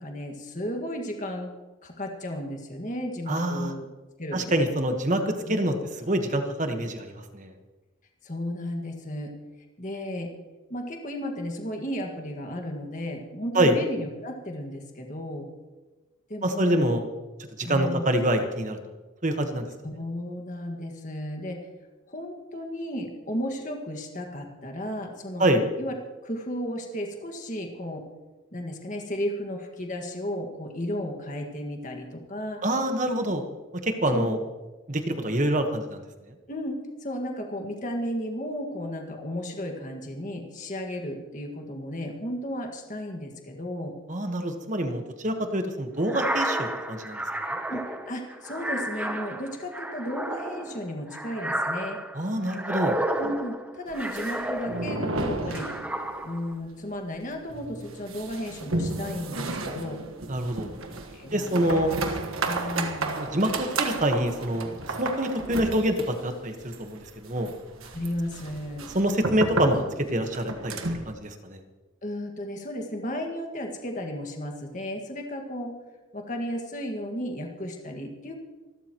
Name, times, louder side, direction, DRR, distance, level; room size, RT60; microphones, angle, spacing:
voice 1, 0.0-1.5 1.8-3.9 4.2-4.4 4.7-4.9 5.5-5.6 8.2-9.3 9.8-10.3 10.7-15.5 16.3-16.9 17.6-18.1 19.8-21.6 22.1-25.5 25.8-25.9 26.2-28.0 28.5-32.6 34.1-34.4 36.5-43.9 47.7-52.0 53.2-55.7 56.2-60.0 61.1-61.9 62.5-63.2 67.9-68.9 72.0-75.8 76.1-78.4, equal, 40° left, 2 dB, 1.8 m, -34 dB
voice 2, 3.3-3.7 4.3-7.5 13.5-13.8 16.4-17.0 17.6-18.8 19.2-19.7 25.4-25.6 32.6-33.4 33.8-34.4 34.9-36.0 44.1-47.2 52.1-53.0 60.3-60.7 61.3-61.9 63.2-64.7 65.0-67.5 68.9-69.8 70.1-71.6, right 1 dB, 35° right, 6 dB, 1.3 m, -26 dB
sound 1, 46.0-55.1 55.5-56.5, right 1 dB, 5° right, 0.8 m, -32 dB
sound 2, 53.9-56.3 56.5-56.6 56.9-57.0 57.5-71.1, right 2 dB, 85° right, 1.5 m, -33 dB
27.0 x 12.5 x 3.1 m, 1.2 s
head